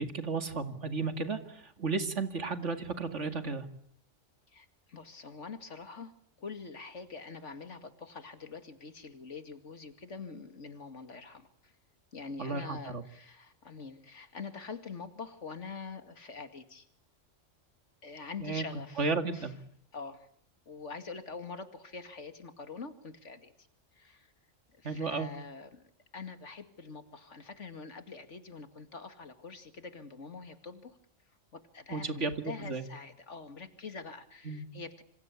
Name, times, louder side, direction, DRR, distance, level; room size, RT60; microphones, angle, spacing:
voice 1, 0.0-1.4 1.8-3.6 12.4-13.0 18.4-18.6 19.0-19.5 24.8-25.3 31.9-32.8 34.4-34.6, right 4 dB, 70° right, 8 dB, 2.5 m, -33 dB
voice 2, 4.5-6.1 6.4-11.7 12.1-16.9 18.0-19.5 19.9-20.3 20.7-23.5 24.0-24.3 24.8-25.8 26.1-31.0 31.5-35.0, left 4 dB, 70° left, 9 dB, 2.5 m, -45 dB
27.0 x 25.5 x 8.4 m, 0.63 s
omnidirectional pair, 1.3 m